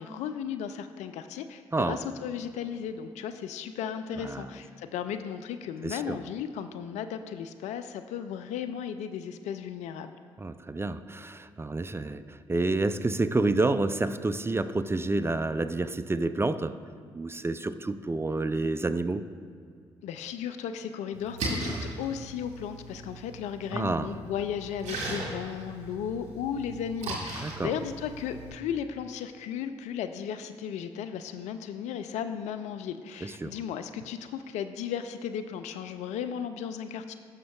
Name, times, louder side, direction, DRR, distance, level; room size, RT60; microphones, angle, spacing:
voice 1, 0.0-10.2 20.0-37.1, left 8 dB, 65° left, 9 dB, 0.4 m, -35 dB
voice 2, 5.8-6.2 10.4-16.8 17.1-19.2 23.7-24.2 27.4-27.7 33.2-33.6, right 2 dB, 20° right, 12 dB, 0.5 m, -29 dB
Splash splatter, 21.1-28.5, right 2 dB, 65° right, 1.7 m, -38 dB
17.5 x 6.2 x 2.3 m, 2.2 s
hypercardioid pair, 40°, 13 cm